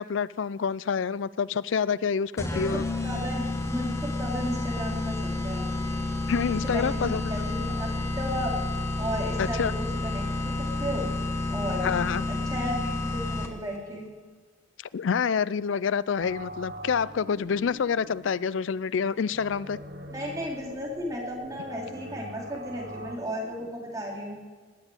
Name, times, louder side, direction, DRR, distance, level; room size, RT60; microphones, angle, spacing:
voice 1, 0.0-2.8 6.3-7.2 9.4-9.7 11.8-12.2 14.9-19.8, left 6 dB, 85° left, 18 dB, 0.4 m, -27 dB
sound 1, 2.4-13.8, left 2 dB, 15° left, 1.1 m, -30 dB
voice 2, 2.4-5.6 6.5-8.6 9.0-10.3 10.6-11.1 11.5-11.9 12.3-14.1 20.1-24.4, equal, 20° right, -3 dB, 3.9 m, -34 dB
sound 2, 16.2-23.2, right 1 dB, 50° right, 1.4 m, -43 dB
19.0 x 7.3 x 9.0 m, 1.4 s
head